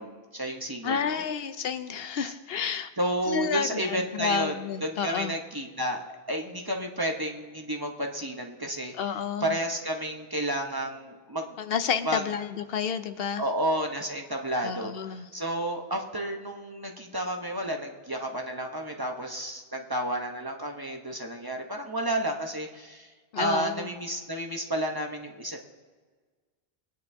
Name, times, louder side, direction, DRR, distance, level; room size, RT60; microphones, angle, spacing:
voice 1, 0.0-1.2 2.2-2.3 3.0-4.5 4.8-6.0 6.3-8.9 9.4-11.5 12.1-12.2 13.4-23.1 23.3-25.7, right 1 dB, 25° right, 2 dB, 0.9 m, -31 dB
voice 2, 0.8-2.9 3.3-5.3 8.9-9.6 11.6-13.4 14.6-15.3 23.3-23.9, left 7 dB, 70° left, 10 dB, 0.8 m, -30 dB
22.0 x 9.4 x 2.7 m, 1.4 s
omnidirectional pair, 1.0 m